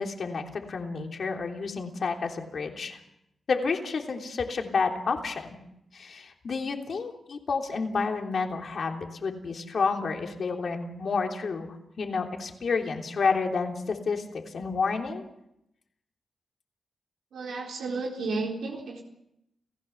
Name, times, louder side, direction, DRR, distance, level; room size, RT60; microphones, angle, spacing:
voice 1, 0.0-3.0 3.5-5.6 5.9-15.2, left 4 dB, 60° left, 3 dB, 3.4 m, -30 dB
voice 2, 17.3-19.0, right 3 dB, 90° right, -1 dB, 4.0 m, -32 dB
30.0 x 15.5 x 7.2 m, 0.82 s
cardioid pair, 80°, 0 cm